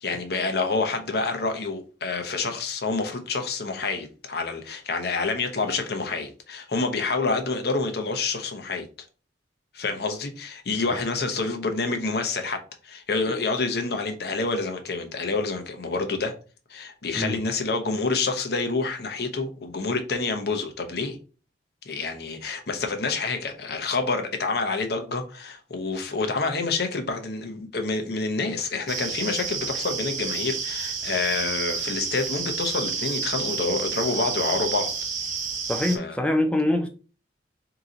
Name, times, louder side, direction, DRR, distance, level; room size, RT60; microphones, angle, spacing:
voice 1, 0.0-8.9 9.7-16.3 16.7-21.2 21.9-34.9 35.9-36.2, left 3 dB, 55° left, 0.8 m, -28 dB
sound 1, 28.9-36.0, right 5 dB, 40° right, 0.7 m, -30 dB
voice 2, 35.7-36.9, left 1 dB, 5° left, 0.5 m, -24 dB
3.8 x 2.9 x 3.9 m
head